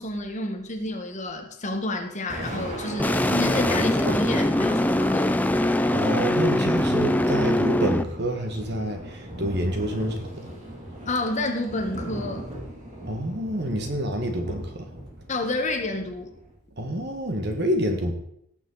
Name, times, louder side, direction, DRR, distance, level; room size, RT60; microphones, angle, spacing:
voice 1, 0.0-5.3 11.1-12.4 15.3-16.3, left 2 dB, 35° left, 4 dB, 1.4 m, -29 dB
Thunder, 1.9-16.5, right 1 dB, 30° right, 2.9 m, -38 dB
sound 1, 3.0-8.0, left 1 dB, 5° left, 0.4 m, -22 dB
voice 2, 5.9-10.5 13.1-14.9 16.8-18.1, right 1 dB, 50° right, 4 dB, 1.8 m, -27 dB
18.0 x 7.0 x 4.0 m, 0.72 s
head